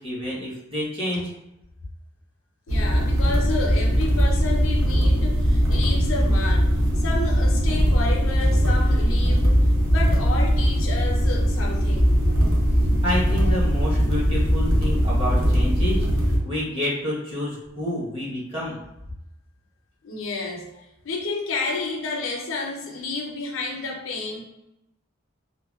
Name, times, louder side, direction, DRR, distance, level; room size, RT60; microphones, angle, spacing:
voice 1, 0.0-1.3 13.0-18.8, left 1 dB, 25° right, -6 dB, 0.9 m, -29 dB
voice 2, 2.7-12.5 13.3-13.6 20.0-24.4, left 3 dB, 75° left, 0 dB, 0.5 m, -31 dB
sound 1, 2.7-16.4, equal, 70° right, 0.6 m, -20 dB
2.8 x 2.2 x 2.2 m, 0.90 s
head